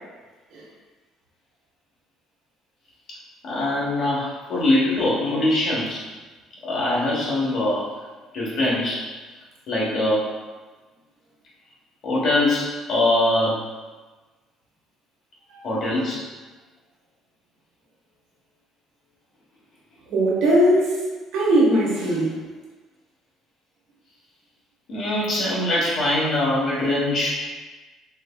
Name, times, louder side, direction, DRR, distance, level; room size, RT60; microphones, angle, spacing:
voice 1, 3.4-6.0 6.6-7.9 8.3-9.1 9.7-10.3 12.0-13.6 15.6-16.3 24.9-27.4, left 1 dB, 60° left, -6 dB, 1.1 m, -22 dB
voice 2, 20.1-21.0 21.3-22.4, right 1 dB, 75° right, -5 dB, 1.2 m, -19 dB
4.3 x 2.7 x 2.2 m, 1.3 s
supercardioid pair, 90°, 0 cm